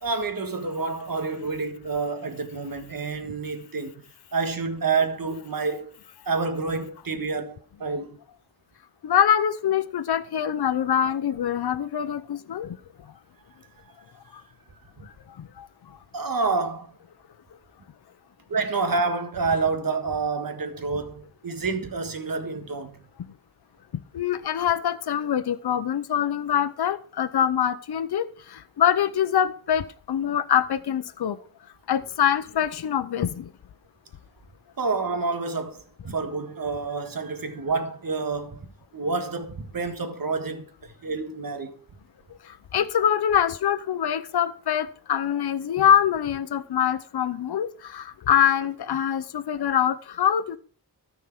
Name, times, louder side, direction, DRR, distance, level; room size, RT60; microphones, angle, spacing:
voice 1, 0.0-4.0 4.3-5.9 6.2-8.2 15.0-15.1 16.1-16.9 18.5-23.0 34.8-38.6 38.9-41.7, right 4 dB, 60° right, 1.6 m, -28 dB
voice 2, 9.0-12.8 15.4-15.7 24.1-31.4 31.9-33.5 42.7-50.6, left 9 dB, 80° left, 0.7 m, -24 dB
13.0 x 4.7 x 5.9 m
wide cardioid pair, 80°, 38 cm